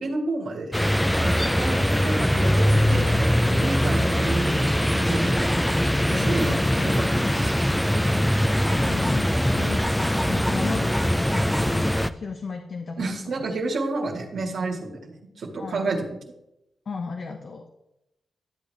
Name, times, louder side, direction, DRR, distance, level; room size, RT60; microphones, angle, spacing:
voice 1, 0.0-0.7 1.2-5.5 6.1-7.9 13.0-16.1, right 3 dB, 80° right, -2 dB, 1.8 m, -30 dB
sound 1, 0.7-12.1, equal, 5° left, 0.5 m, -22 dB
voice 2, 6.1-7.4 8.5-13.1 15.6-16.0 16.9-17.7, left 4 dB, 60° left, 4 dB, 1.1 m, -34 dB
13.0 x 8.1 x 3.3 m, 0.87 s
cardioid pair, 75°, 0 cm